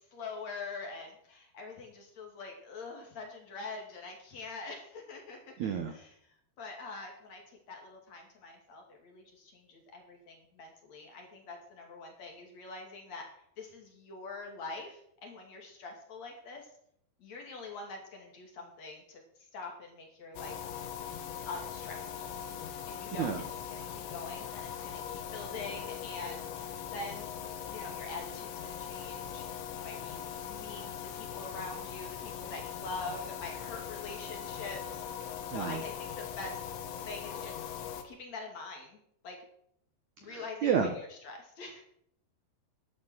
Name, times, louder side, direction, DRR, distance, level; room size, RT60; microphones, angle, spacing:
voice 1, 0.1-5.5 5.9-6.1 6.6-7.4 7.7-13.3 13.6-16.7 17.2-19.2 19.5-20.6 21.5-27.3 27.7-36.6 37.1-37.6 38.0-39.4 40.2-41.8, left 3 dB, 45° left, 1 dB, 3.2 m, -44 dB
voice 2, 5.6-5.9 23.2-23.4 35.5-35.8 40.3-40.9, right 7 dB, 75° right, 6 dB, 1.7 m, -30 dB
sound 1, 20.4-38.0, left 8 dB, 90° left, 3.6 m, -41 dB
12.0 x 11.5 x 6.2 m, 0.69 s
omnidirectional pair, 5.0 m